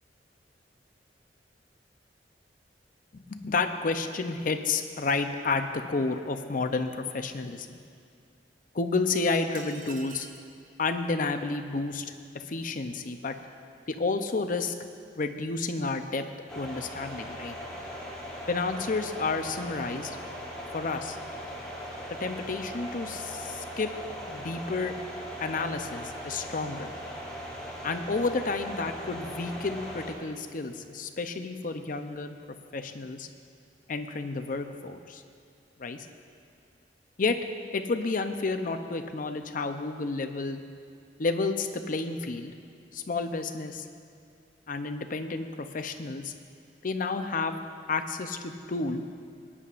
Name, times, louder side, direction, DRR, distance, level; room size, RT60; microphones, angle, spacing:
voice 1, 3.1-7.8 8.7-10.3 10.8-13.3 13.9-14.7 15.2-16.2 16.5-17.5 18.5-20.2 20.7-21.2 22.2-23.9 24.3-24.9 25.4-26.9 27.8-32.3 32.7-33.3 33.9-35.2 35.8-36.0 37.2-37.4 37.7-40.6 41.2-42.5 42.9-43.8 44.7-46.3 46.8-47.6 47.9-49.0, left 3 dB, 50° left, 7 dB, 0.6 m, -31 dB
sound 1, 9.5-10.5, right 5 dB, 50° right, 0.7 m, -46 dB
sound 2, 16.5-30.1, equal, 5° left, 2.3 m, -39 dB
20.5 x 9.7 x 2.5 m, 2.3 s
head